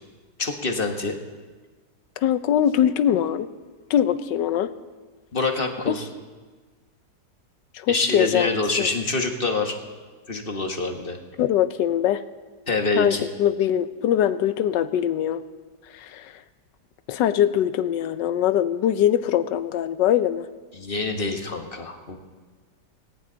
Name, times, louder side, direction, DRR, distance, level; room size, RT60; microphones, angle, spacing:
voice 1, 0.4-1.1 5.3-6.1 7.9-9.8 10.3-11.2 12.7-13.3 20.7-22.2, left 3 dB, 35° left, 4 dB, 1.4 m, -26 dB
voice 2, 2.2-3.5 3.9-4.7 5.8-5.9 7.7-8.9 11.4-12.2 12.9-15.4 15.9-16.3 17.1-20.4, left 10 dB, 90° left, 13 dB, 1.4 m, -22 dB
18.0 x 17.5 x 4.0 m, 1.4 s
omnidirectional pair, 1.9 m